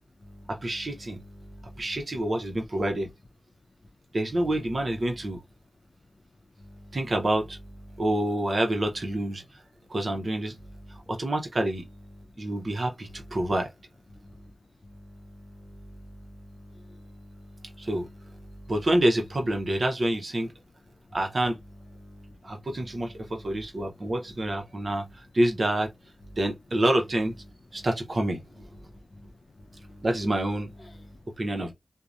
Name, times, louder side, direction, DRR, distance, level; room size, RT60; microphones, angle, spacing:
voice 1, 0.5-1.2 1.8-3.1 4.1-5.4 6.9-7.6 8.0-9.4 9.9-10.6 11.1-11.8 12.4-13.7 17.8-18.1 18.7-20.5 21.1-21.6 22.4-25.1 25.3-25.9 26.4-27.3 27.7-28.4 30.0-30.7 31.4-31.7, right 1 dB, 55° right, 0.7 m, -27 dB
voice 2, 1.4-2.0 6.6-7.0 7.9-8.0 10.7-11.0 14.1-14.5 14.8-17.9 18.4-18.7 22.0-22.4 23.2-23.6 28.8-29.3 29.6-30.0 31.0-31.2, equal, 55° left, 0.5 m, -48 dB
2.8 x 2.1 x 2.4 m
wide cardioid pair, 65°, 0 cm